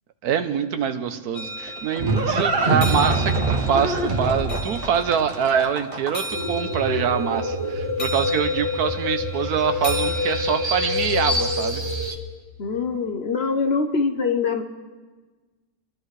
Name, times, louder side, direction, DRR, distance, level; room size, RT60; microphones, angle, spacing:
voice 1, 0.2-11.8, right 8 dB, 85° right, 9 dB, 1.3 m, -24 dB
sound 1, 1.3-11.1, equal, 70° left, 2.1 m, -35 dB
Livestock farm animals working animals, 1.4-6.4, right 3 dB, 40° right, 1.3 m, -24 dB
sound 2, 6.3-12.2, left 2 dB, 20° right, 1.0 m, -26 dB
voice 2, 12.6-14.6, left 4 dB, 50° left, 7 dB, 0.9 m, -23 dB
28.0 x 12.0 x 3.3 m, 1.3 s
omnidirectional pair, 1.6 m